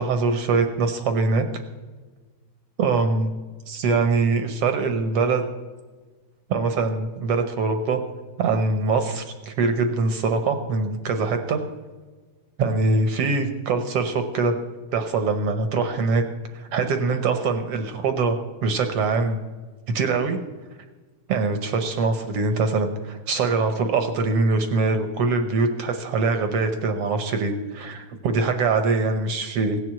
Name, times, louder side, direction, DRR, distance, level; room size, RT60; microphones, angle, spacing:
voice 1, 0.0-1.5 2.8-3.3 3.7-5.4 6.5-8.0 8.4-11.6 12.6-14.5 14.9-16.2 16.5-19.4 19.9-20.4 21.3-29.8, right 4 dB, 65° right, 7 dB, 1.6 m, -23 dB
17.0 x 7.8 x 7.3 m, 1.3 s
omnidirectional pair, 3.4 m